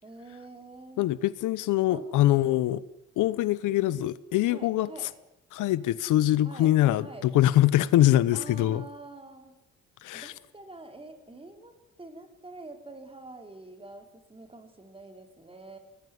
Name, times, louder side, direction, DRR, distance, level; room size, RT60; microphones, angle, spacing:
voice 1, 0.0-1.2 1.9-2.1 4.5-5.1 6.4-7.3 8.3-9.6 10.1-15.8, right 2 dB, 20° right, 4.8 m, -46 dB
voice 2, 1.0-2.8 3.2-4.9 5.5-8.8 10.0-10.3, left 14 dB, 85° left, 0.9 m, -23 dB
20.5 x 20.5 x 9.6 m
cardioid pair, 90°, 30 cm